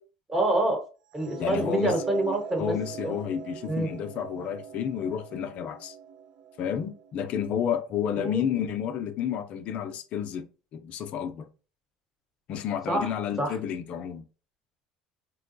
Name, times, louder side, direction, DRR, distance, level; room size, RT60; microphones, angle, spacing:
voice 1, 0.3-0.8 1.1-2.7 3.0-3.2 3.7-3.9 8.2-8.5 12.9-13.1 13.4-13.6, right 1 dB, 15° right, 1.2 m, -26 dB
sound 1, 1.1-7.4, right 8 dB, 45° right, 0.4 m, -41 dB
voice 2, 1.4-2.0 2.6-6.0 6.6-10.5 10.7-11.5 12.5-14.2, left 8 dB, 50° left, 0.5 m, -31 dB
3.9 x 2.2 x 2.6 m
supercardioid pair, 115°, 3 cm